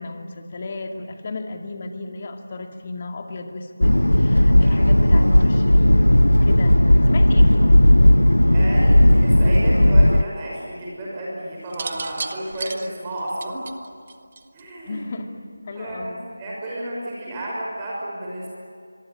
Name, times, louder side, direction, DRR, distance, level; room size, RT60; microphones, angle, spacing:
voice 1, 0.0-6.0 6.3-7.8 14.9-15.4 15.6-16.2, left 2 dB, 35° left, 4 dB, 2.3 m, -34 dB
sound 1, 3.8-10.2, left 1 dB, 85° left, 0.7 m, -14 dB
voice 2, 4.6-5.3 8.5-13.6 14.5-15.1 15.7-18.5, right 1 dB, 15° right, -5 dB, 6.2 m, -32 dB
sound 2, 11.7-14.8 15.9-16.3, right 4 dB, 40° right, 1.3 m, -34 dB
26.0 x 23.0 x 8.8 m, 2.2 s
figure-of-eight pair, 165°, 0 cm